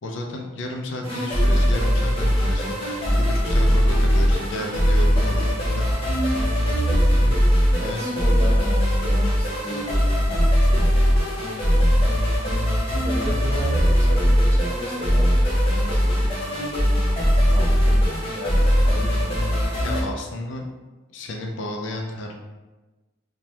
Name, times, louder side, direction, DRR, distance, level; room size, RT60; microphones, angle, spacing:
voice 1, 0.0-6.4 7.2-7.4 7.8-8.1 19.8-20.7 21.1-22.3, left 1 dB, 70° left, 2 dB, 0.4 m, -32 dB
sound 1, 1.0-20.0, equal, 30° left, 0.7 m, -20 dB
voice 2, 7.8-9.9 10.5-10.9 13.0-16.3 17.5-18.6 18.9-19.8, equal, 15° right, -5 dB, 0.6 m, -35 dB
2.7 x 2.2 x 3.2 m, 1.2 s
head